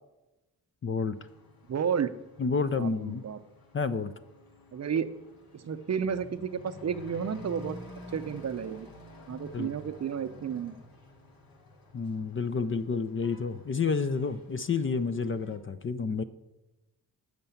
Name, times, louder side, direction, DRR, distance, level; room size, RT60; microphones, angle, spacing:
voice 1, 0.8-1.2 2.4-3.2 3.7-4.1 9.5-9.7 11.9-16.2, left 5 dB, 35° left, 13 dB, 0.5 m, -29 dB
Truck / Accelerating revving vroom, 1.1-15.6, left 2 dB, 65° left, 1.8 m, -50 dB
voice 2, 1.7-2.1 2.8-3.4 4.7-5.1 5.5-7.8 8.1-8.9 9.3-10.8, right 7 dB, 45° right, 11 dB, 0.6 m, -32 dB
7.8 x 6.7 x 7.1 m, 1.0 s
cardioid pair, 80°, 38 cm